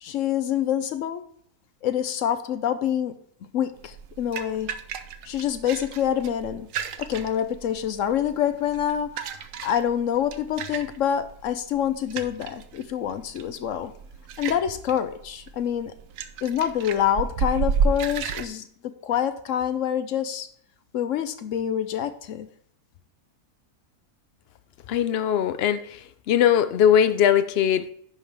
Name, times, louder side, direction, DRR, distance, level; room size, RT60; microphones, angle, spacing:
voice 1, 0.0-1.2 1.8-3.1 3.5-4.7 5.2-6.7 7.0-9.3 9.6-13.9 14.4-15.9 16.4-20.5 20.9-22.5, left 9 dB, 65° left, 11 dB, 0.9 m, -26 dB
sound 1, 3.8-18.5, right 6 dB, 65° right, 1.0 m, -32 dB
voice 2, 24.9-26.0 26.3-27.9, left 9 dB, 85° left, 12 dB, 0.5 m, -20 dB
10.0 x 5.7 x 3.4 m, 0.64 s
omnidirectional pair, 1.6 m